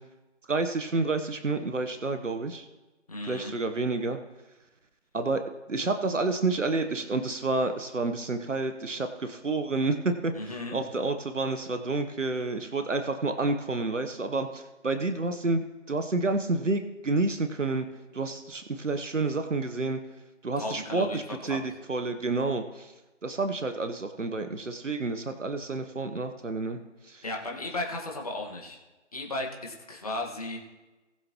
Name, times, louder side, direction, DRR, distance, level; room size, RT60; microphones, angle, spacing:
voice 1, 0.5-2.6 3.3-4.2 5.1-5.4 5.7-10.3 10.7-17.8 18.1-20.0 20.4-21.6 21.9-22.9 23.2-26.8 27.1-27.2, right 3 dB, 80° right, 8 dB, 1.1 m, -29 dB
voice 2, 3.1-3.6 10.3-10.8 20.6-21.7 27.2-28.8 29.1-30.6, left 2 dB, 30° left, 0 dB, 1.7 m, -35 dB
20.0 x 6.9 x 3.1 m, 1.1 s
figure-of-eight pair, 170°, 37 cm